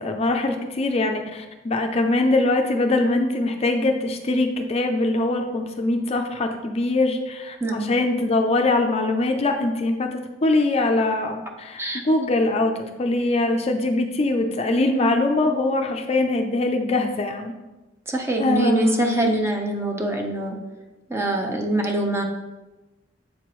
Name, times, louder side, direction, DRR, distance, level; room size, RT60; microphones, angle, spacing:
voice 1, 0.0-10.1 10.4-17.5 18.4-19.3, left 2 dB, 35° left, 4 dB, 0.4 m, -22 dB
voice 2, 18.1-20.6 21.1-22.2, right 2 dB, 15° right, 2 dB, 0.6 m, -24 dB
7.4 x 4.3 x 3.0 m, 1.1 s
head